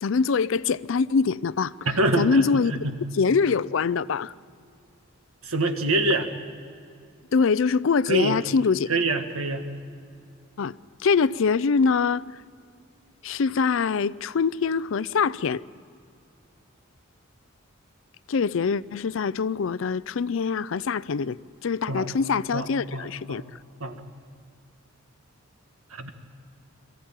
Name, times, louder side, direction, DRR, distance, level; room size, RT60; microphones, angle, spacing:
voice 1, 0.0-1.7 2.2-2.8 3.1-4.3 7.3-8.9 10.6-10.8 11.0-12.2 13.2-15.6 18.3-21.4 21.6-23.4, left 5 dB, 60° left, 0.4 m, -24 dB
voice 2, 1.8-3.0 5.4-6.3 8.1-8.4 8.9-9.7 21.9-22.1 22.5-23.4 23.8-24.0 25.9-26.1, right 2 dB, 75° right, 1.8 m, -26 dB
23.0 x 15.0 x 9.0 m
head